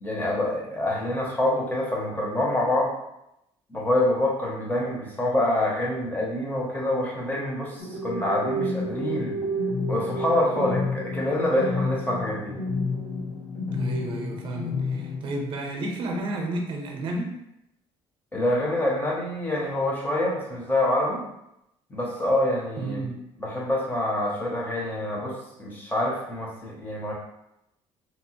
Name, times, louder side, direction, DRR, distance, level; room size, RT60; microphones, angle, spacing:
voice 1, 0.0-2.9 3.7-9.4 9.9-12.6 18.3-21.2 21.9-23.1 23.4-27.1, left 1 dB, 15° left, -3 dB, 0.7 m, -26 dB
sound 1, 7.8-15.2, left 2 dB, 85° left, 0.9 m, -30 dB
voice 2, 13.7-17.3 22.8-23.1, right 2 dB, 50° right, 1 dB, 0.6 m, -31 dB
2.8 x 2.0 x 2.8 m, 0.84 s
cardioid pair, 140°, 11 cm